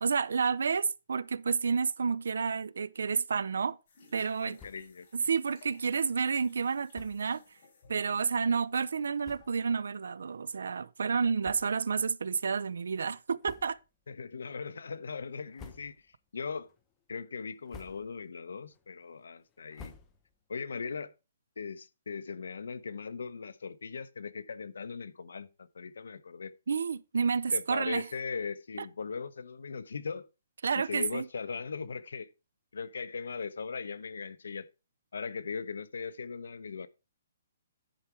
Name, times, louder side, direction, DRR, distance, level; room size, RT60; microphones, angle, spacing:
voice 1, 0.0-3.8 4.1-4.6 5.1-7.4 7.9-13.8 26.7-28.1 30.6-31.3, right 5 dB, 80° right, 0.5 m, -30 dB
sound 1, 3.9-9.7, left 4 dB, 40° left, 3.9 m, -61 dB
voice 2, 4.2-5.1 14.1-16.0 16.3-16.7 17.1-19.9 20.5-21.1 21.6-26.5 27.5-30.3 30.7-32.3 32.7-34.7 35.1-36.9, left 5 dB, 90° left, 0.8 m, -39 dB
sound 2, 4.5-5.0 5.4-5.5 5.7-5.9 6.9-7.3 8.1-8.2 8.9-9.0 9.2-9.7 10.3-10.4 11.4-12.0 12.4-12.6 13.4-14.0 14.4-14.9 15.3-16.2 16.6-17.0 17.5-18.3 18.7-20.5, left 5 dB, 15° left, 0.7 m, -53 dB
10.5 x 4.8 x 4.4 m
hypercardioid pair, 175°, 0 cm